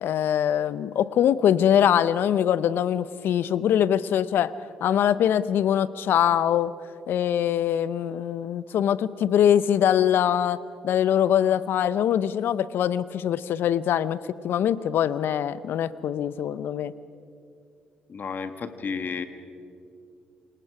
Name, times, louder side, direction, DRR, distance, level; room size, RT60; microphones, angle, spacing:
voice 1, 0.0-4.5 4.8-6.7 7.1-14.2 14.4-16.9, left 10 dB, 70° left, 17 dB, 0.7 m, -23 dB
voice 2, 18.1-19.2, left 5 dB, 50° left, 9 dB, 1.7 m, -32 dB
28.0 x 22.0 x 4.9 m, 2.5 s
hypercardioid pair, 50°, 4 cm